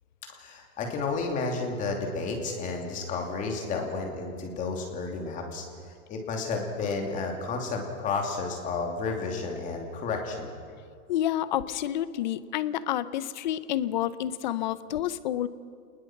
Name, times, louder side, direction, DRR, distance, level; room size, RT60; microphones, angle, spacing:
voice 1, 0.3-5.6 6.1-10.5, left 4 dB, 20° left, 2 dB, 2.8 m, -31 dB
voice 2, 11.1-15.5, left 12 dB, 35° left, 15 dB, 0.7 m, -29 dB
28.0 x 20.5 x 6.0 m, 2.2 s
hypercardioid pair, 165°, 42 cm